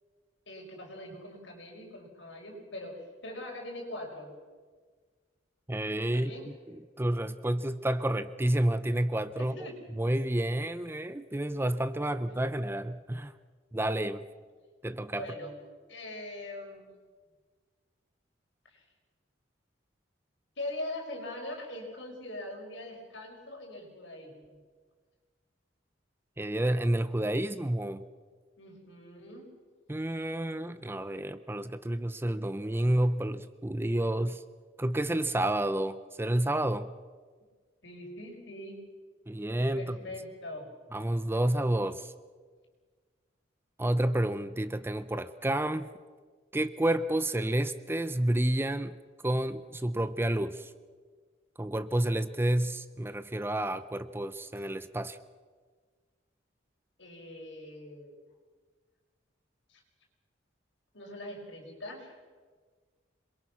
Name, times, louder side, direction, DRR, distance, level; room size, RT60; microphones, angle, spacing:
voice 1, 0.5-4.3 6.1-6.5 9.4-9.8 12.1-12.2 15.1-15.5 15.9-16.9 18.7-18.8 20.6-24.6 28.6-29.5 37.8-38.8 39.8-40.7 57.0-58.1 59.7-59.8 60.9-62.2, left 1 dB, 75° left, 1 dB, 5.4 m, -42 dB
voice 2, 5.7-6.3 6.7-9.7 10.0-13.3 13.7-14.2 14.8-15.3 26.4-28.0 29.9-34.4 34.8-36.9 39.3-40.0 40.9-42.1 43.8-45.9 46.5-49.0 49.2-50.7 51.6-55.2, right 1 dB, 10° right, 13 dB, 0.6 m, -30 dB
27.0 x 22.0 x 6.0 m, 1.5 s
head